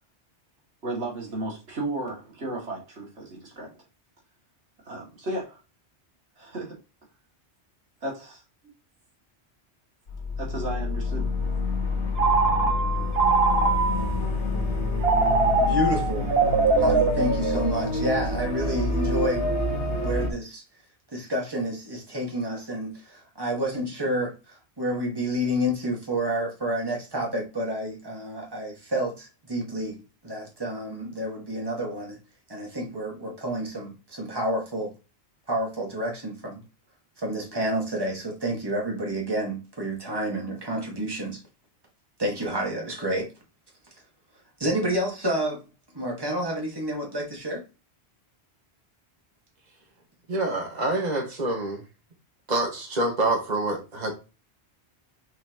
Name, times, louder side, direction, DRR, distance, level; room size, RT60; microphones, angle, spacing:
voice 1, 0.8-3.7 4.8-5.6 6.4-6.8 8.0-8.4 10.4-11.3, right 2 dB, 90° right, 2.8 m, -34 dB
sound 1, 10.1-20.3, left 2 dB, 80° left, 2.1 m, -27 dB
Telephone, 12.2-14.2 15.0-18.1, right 4 dB, 65° right, 1.6 m, -23 dB
voice 2, 15.6-16.3 16.7-19.5 20.0-20.6 21.1-30.0 30.2-32.2 32.5-34.9 35.5-36.6 37.2-41.4 42.2-43.3 44.6-45.6 45.9-47.6, right 1 dB, 20° right, 1.9 m, -29 dB
voice 3, 50.3-51.8 52.5-54.1, right 2 dB, 40° right, 1.9 m, -26 dB
5.9 x 5.8 x 3.0 m
omnidirectional pair, 1.1 m